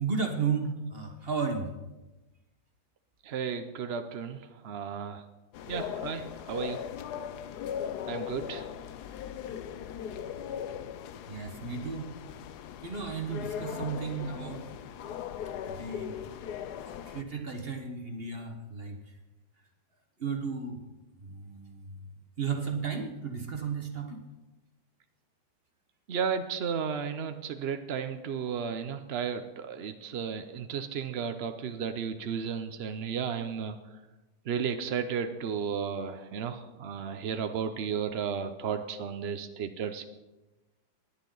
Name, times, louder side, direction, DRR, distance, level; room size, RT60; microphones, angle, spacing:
voice 1, 0.0-1.7 11.3-12.1 12.8-14.6 15.6-16.1 17.1-18.9 20.2-20.8 21.2-21.9 22.4-24.2, right 5 dB, 35° right, 4 dB, 1.3 m, -34 dB
voice 2, 3.2-5.2 5.7-6.8 8.1-8.6 26.1-33.8 34.5-40.1, right 7 dB, 75° right, 8 dB, 0.5 m, -34 dB
sound 1, 5.5-17.2, left 9 dB, 70° left, 1.1 m, -39 dB
19.0 x 10.5 x 3.9 m, 1.1 s
omnidirectional pair, 2.0 m